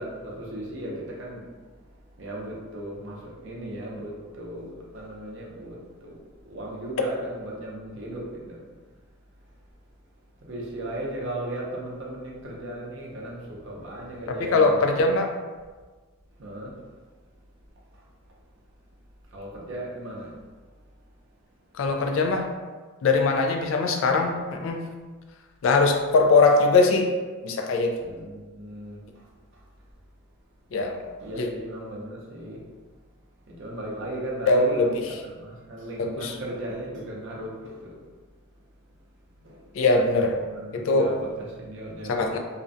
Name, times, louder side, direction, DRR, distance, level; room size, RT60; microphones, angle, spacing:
voice 1, 0.0-8.8 10.4-14.8 16.3-17.1 17.9-18.1 19.3-20.6 28.0-29.7 31.2-32.8 33.5-38.1 39.3-39.8 40.4-42.4, right 1 dB, 55° right, -3 dB, 0.5 m, -37 dB
voice 2, 14.5-15.3 21.8-22.5 23.0-24.8 25.6-27.1 27.4-27.9 30.7-31.0 31.4-31.5 34.5-34.9 36.2-36.3 39.8-40.4 40.7-41.1 42.1-42.4, left 3 dB, 65° left, 4 dB, 0.3 m, -21 dB
2.4 x 2.1 x 2.5 m, 1.4 s
head